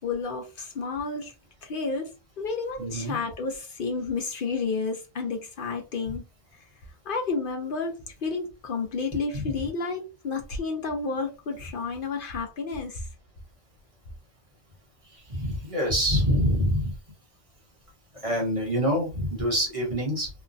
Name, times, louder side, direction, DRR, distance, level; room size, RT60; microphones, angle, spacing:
voice 1, 0.0-1.3 1.6-6.2 7.0-13.1, left 4 dB, 60° left, 0.7 m, -31 dB
voice 2, 2.8-3.2 9.3-9.4 15.3-16.9 18.2-20.3, equal, 35° right, 1.0 m, -25 dB
3.1 x 2.1 x 2.5 m
omnidirectional pair, 1.1 m